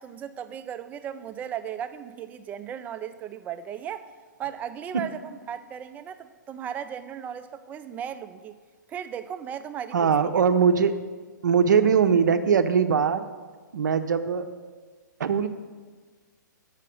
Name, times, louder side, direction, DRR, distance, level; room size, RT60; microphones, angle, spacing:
voice 1, 0.0-4.1 4.4-8.6 8.9-10.4, right 9 dB, 15° right, 10 dB, 0.3 m, -36 dB
voice 2, 9.9-10.9 11.4-13.3 13.7-14.5 15.2-15.5, right 6 dB, 65° right, 10 dB, 0.6 m, -21 dB
7.5 x 5.7 x 6.6 m, 1.5 s
figure-of-eight pair, 125°, 11 cm